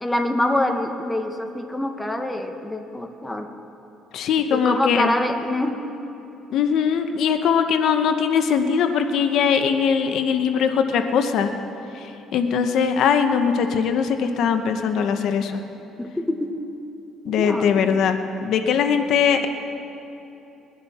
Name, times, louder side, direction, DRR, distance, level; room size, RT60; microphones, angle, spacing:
voice 1, 0.0-3.5 4.5-5.8 16.0-16.5 17.4-18.0, left 1 dB, 5° left, 5 dB, 0.9 m, -25 dB
voice 2, 4.1-5.1 6.5-11.5 11.9-12.1 12.3-15.6 17.2-19.5, left 7 dB, 65° left, 7 dB, 0.9 m, -21 dB
21.5 x 11.0 x 4.2 m, 3.0 s
cardioid pair, 135°, 0 cm